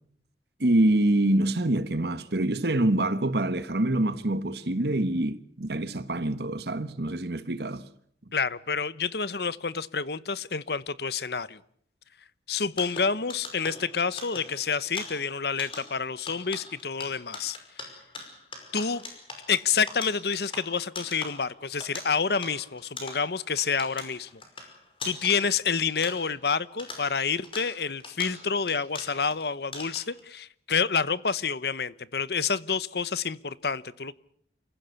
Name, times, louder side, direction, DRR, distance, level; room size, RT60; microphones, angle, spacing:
voice 1, 0.6-7.9, right 1 dB, 65° right, 1.4 m, -25 dB
voice 2, 8.3-11.6 12.5-17.6 18.7-19.0 19.5-24.4 25.0-34.1, left 5 dB, 65° left, 0.9 m, -28 dB
sound 1, 12.7-26.5 26.8-29.4 29.7-30.2, left 3 dB, 30° left, 5.6 m, -42 dB
28.5 x 15.5 x 8.2 m
head